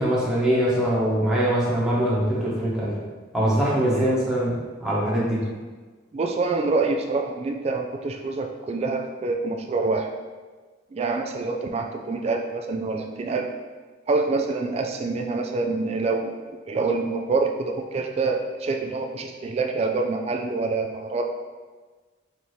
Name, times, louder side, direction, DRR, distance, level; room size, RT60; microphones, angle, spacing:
voice 1, 0.0-3.0 3.3-5.4, right 1 dB, 5° right, -8 dB, 1.0 m, -23 dB
voice 2, 6.1-10.1 10.9-13.5 14.1-16.3 16.7-21.2, right 3 dB, 35° right, 3 dB, 0.3 m, -26 dB
4.4 x 2.8 x 3.2 m, 1.4 s
head